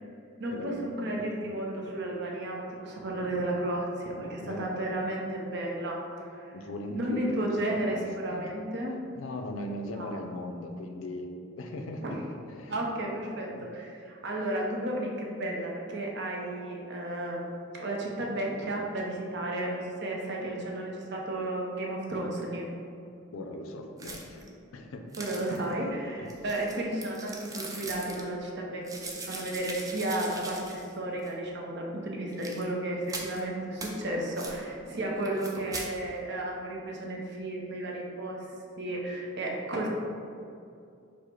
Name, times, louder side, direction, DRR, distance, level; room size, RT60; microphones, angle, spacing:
voice 1, 0.4-6.2 6.9-8.9 10.0-10.2 12.0-12.2 12.7-22.7 25.2-38.4 38.8-39.9, right 1 dB, 55° right, -1 dB, 0.6 m, -33 dB
voice 2, 6.5-8.4 9.2-11.3 11.6-12.2 12.5-12.8 13.5-13.7 23.3-25.1 26.2-26.3, left 1 dB, 80° left, 4 dB, 0.4 m, -39 dB
sound 1, 24.0-24.5 25.1-25.7 26.3-28.2 28.8-30.9 31.2-31.3 32.3-32.6 33.1-33.4 33.8-33.9 34.4-34.6 35.2-35.9, right 3 dB, 15° right, 0.4 m, -41 dB
4.7 x 2.1 x 4.4 m, 2.5 s
head